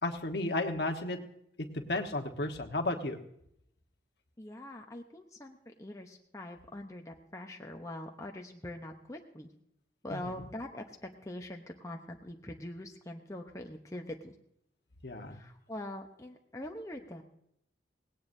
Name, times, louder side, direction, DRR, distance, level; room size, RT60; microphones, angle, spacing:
voice 1, 0.0-1.2 1.9-3.2 10.1-10.5 15.0-15.4, left 2 dB, 60° left, 4 dB, 1.2 m, -33 dB
voice 2, 4.4-9.5 10.0-14.3 15.3-17.2, left 1 dB, 15° left, 2 dB, 0.8 m, -43 dB
18.5 x 17.0 x 2.7 m, 0.74 s
head